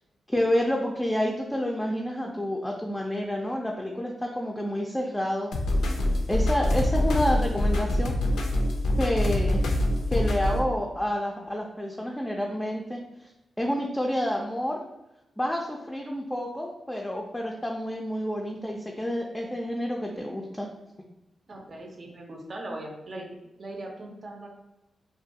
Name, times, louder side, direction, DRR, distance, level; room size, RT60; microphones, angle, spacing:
voice 1, 0.3-5.5 6.3-8.1 9.0-9.7 10.1-13.0 13.6-14.8 15.4-20.7, equal, 10° left, 0 dB, 0.4 m, -29 dB
sound 1, 5.5-10.6, left 1 dB, 80° left, 0.3 m, -25 dB
voice 2, 21.5-24.5, right 1 dB, 55° right, 1 dB, 0.5 m, -40 dB
2.4 x 2.2 x 2.7 m, 0.94 s
supercardioid pair, 45°, 0 cm